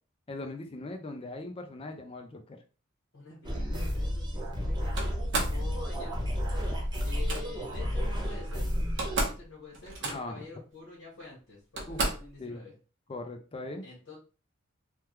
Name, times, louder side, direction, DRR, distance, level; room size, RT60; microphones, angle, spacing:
voice 1, 0.3-2.6 10.0-10.4 11.9-12.0 12.4-12.6 13.1-13.8, left 2 dB, 30° left, 5 dB, 0.4 m, -40 dB
voice 2, 3.1-5.0 5.5-6.1 7.0-8.7 9.2-12.8 13.8-14.2, left 5 dB, 85° left, -5 dB, 1.3 m, -47 dB
sound 1, 3.4-9.2, equal, 20° right, 0.9 m, -31 dB
Slam, 5.0-5.6 7.0-7.4 8.5-8.6 8.8-9.4 9.7-10.4 11.2-11.3 11.8-12.3, right 2 dB, 65° right, 0.8 m, -32 dB
3.3 x 2.2 x 2.9 m, 0.35 s
head